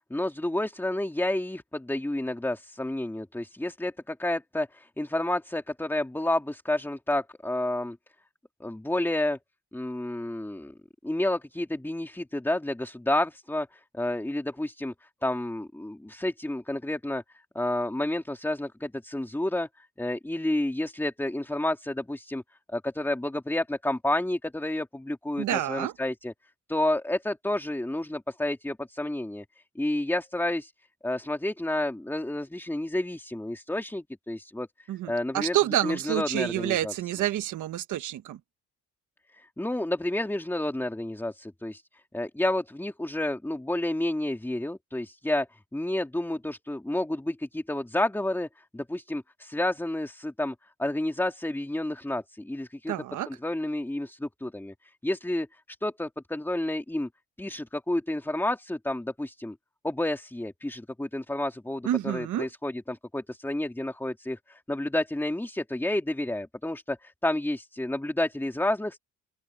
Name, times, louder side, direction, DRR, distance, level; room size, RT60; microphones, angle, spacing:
voice 1, 0.1-8.0 8.6-9.4 9.7-10.7 11.0-14.9 15.2-17.2 17.5-22.4 22.7-26.3 26.7-29.4 29.7-30.7 31.0-35.6 35.8-36.9 39.3-52.9 53.3-55.5 55.8-57.1 57.4-59.6 59.8-69.0, left 1 dB, 5° left, 2.8 m, -30 dB
voice 2, 25.4-25.9 34.9-38.4 52.9-53.3 61.8-62.5, right 13 dB, 80° right, 1.3 m, -28 dB
open air
cardioid pair, 90°, 30 cm